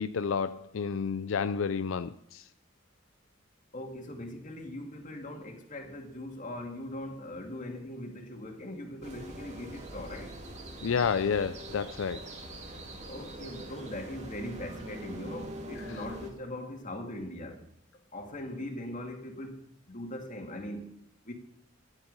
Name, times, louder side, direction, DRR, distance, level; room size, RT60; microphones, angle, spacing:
voice 1, 0.0-2.4 10.8-12.2, left 6 dB, 75° left, 0.4 m, -30 dB
voice 2, 3.7-10.3 13.1-17.6 18.1-20.9 21.3-21.4, left 1 dB, 40° left, 2.2 m, -40 dB
sound 1, 9.0-16.3, right 1 dB, 35° right, 2.1 m, -43 dB
13.0 x 10.5 x 5.4 m
head